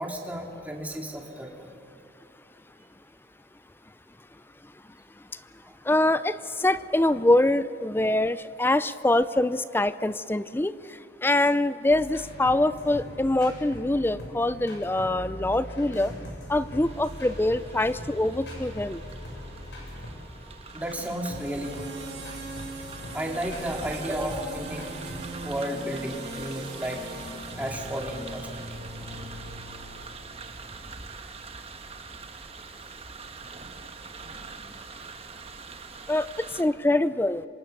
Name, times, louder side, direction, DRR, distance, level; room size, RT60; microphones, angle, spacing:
voice 1, 0.0-1.7 5.7-5.8 20.7-21.7 23.1-24.8 25.4-27.0 27.6-28.7 29.1-29.2, equal, 10° right, 0 dB, 2.8 m, -33 dB
voice 2, 5.9-10.7 11.2-16.1 16.5-19.0 36.1-36.3 36.5-37.5, left 1 dB, 15° left, 15 dB, 0.5 m, -24 dB
sound 1, 11.9-20.2 20.7-25.2, left 1 dB, 80° left, 6.2 m, -41 dB
sound 2, 16.8-36.6, right 4 dB, 35° right, 1.4 m, -44 dB
sound 3, 17.0-30.0, right 2 dB, 80° right, 5.7 m, -42 dB
27.0 x 25.0 x 6.7 m, 2.7 s
head